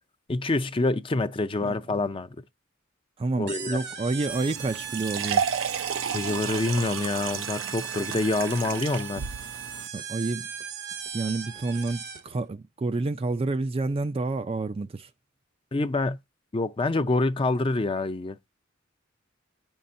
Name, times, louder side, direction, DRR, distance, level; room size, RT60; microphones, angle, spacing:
voice 1, 0.3-2.3 3.4-3.8 6.1-9.2 15.7-16.2 16.5-18.4, left 2 dB, 25° left, 0.5 m, -26 dB
voice 2, 3.2-5.4 9.9-10.5 11.1-15.1, right 3 dB, 30° right, 0.4 m, -29 dB
sound 1, 3.5-12.4, right 8 dB, 55° right, 0.8 m, -38 dB
sound 2, 4.3-9.9, right 7 dB, 90° right, 0.5 m, -32 dB
9.4 x 5.5 x 2.6 m
head